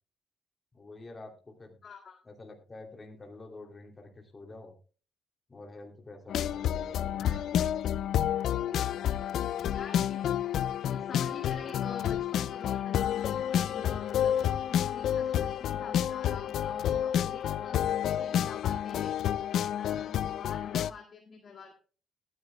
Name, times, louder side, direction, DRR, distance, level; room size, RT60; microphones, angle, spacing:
voice 1, 0.7-1.8 2.2-4.8 5.5-7.2, left 2 dB, 25° left, 2 dB, 2.8 m, -47 dB
voice 2, 1.8-2.2 7.2-7.4 9.7-10.4 10.9-14.4 14.7-19.2 19.7-21.7, left 5 dB, 50° left, 1 dB, 2.0 m, -47 dB
sound 1, 6.3-20.9, left 10 dB, 75° left, 0.4 m, -29 dB
19.0 x 9.7 x 2.3 m, 0.37 s
cardioid pair, 90°, 0 cm